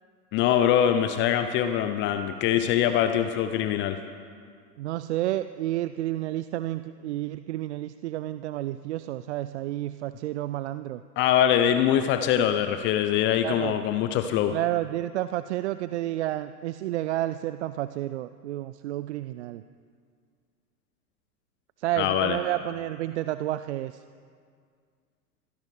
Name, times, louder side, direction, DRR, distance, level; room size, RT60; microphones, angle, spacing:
voice 1, 0.3-4.0 11.2-14.5 22.0-22.4, left 10 dB, 25° left, 9 dB, 0.5 m, -23 dB
voice 2, 4.8-11.0 13.4-13.8 14.5-19.6 21.8-24.0, right 14 dB, 45° right, 13 dB, 0.4 m, -30 dB
25.0 x 17.0 x 3.2 m, 2.1 s
figure-of-eight pair, 95°, 49 cm